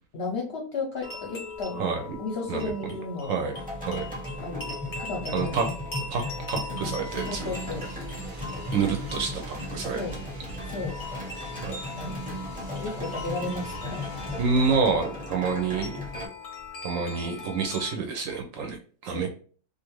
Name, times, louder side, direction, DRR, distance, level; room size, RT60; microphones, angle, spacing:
voice 1, 0.1-1.9 2.2-3.4 4.4-5.5 7.3-7.8 9.9-10.1 10.7-11.0 11.8-12.2 12.8-14.1 19.1-19.3, left 3 dB, 60° left, -1 dB, 0.7 m, -34 dB
sound 1, 1.0-18.0, left 3 dB, 75° left, 0.3 m, -41 dB
voice 2, 2.5-4.1 5.3-5.7 6.1-6.2 6.5-7.5 8.4-10.0 11.6-11.8 14.4-16.0 16.8-19.3, right 5 dB, 70° right, 4 dB, 0.8 m, -28 dB
sound 2, 3.5-16.3, equal, 10° right, 0.6 m, -36 dB
sound 3, 7.0-14.8, right 2 dB, 85° right, 0.3 m, -44 dB
2.5 x 2.4 x 3.0 m, 0.41 s
omnidirectional pair, 1.6 m